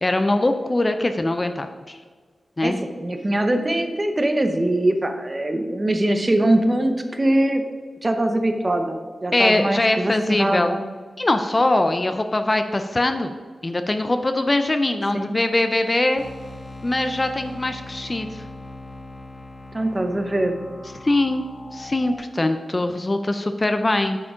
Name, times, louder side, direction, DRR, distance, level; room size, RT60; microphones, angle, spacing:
voice 1, 0.0-2.0 2.6-2.8 9.3-10.7 11.2-13.3 13.6-16.2 16.8-18.4 21.0-21.4 21.7-24.2, left 2 dB, 30° left, 8 dB, 0.5 m, -22 dB
voice 2, 2.6-7.6 8.0-10.8 15.1-15.4 19.7-20.6, right 1 dB, 25° right, 6 dB, 0.8 m, -22 dB
sound 1, 16.2-22.2, left 2 dB, 55° left, 1.3 m, -40 dB
8.2 x 4.8 x 5.0 m, 1.5 s
wide cardioid pair, 90°, 0 cm